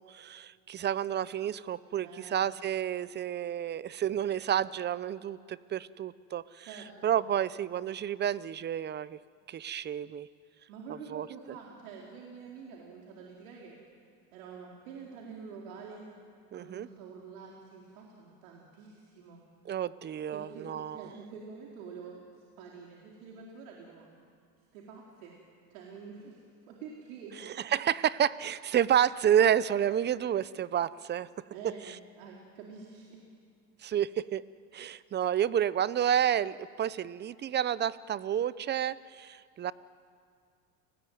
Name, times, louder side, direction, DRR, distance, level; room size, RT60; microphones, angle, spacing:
voice 1, 0.0-6.7 7.0-9.2 9.5-10.3 11.1-11.3 16.5-16.9 19.7-21.0 27.4-31.3 33.8-34.4 34.7-39.7, right 10 dB, 25° right, 18 dB, 0.7 m, -30 dB
voice 2, 2.0-2.5 6.7-7.2 10.7-13.8 14.3-16.1 16.5-19.4 20.3-24.1 24.7-25.4 25.7-27.4 31.5-33.2, right 5 dB, 80° right, -1 dB, 4.2 m, -47 dB
30.0 x 20.0 x 9.4 m, 2.3 s
supercardioid pair, 115°, 40 cm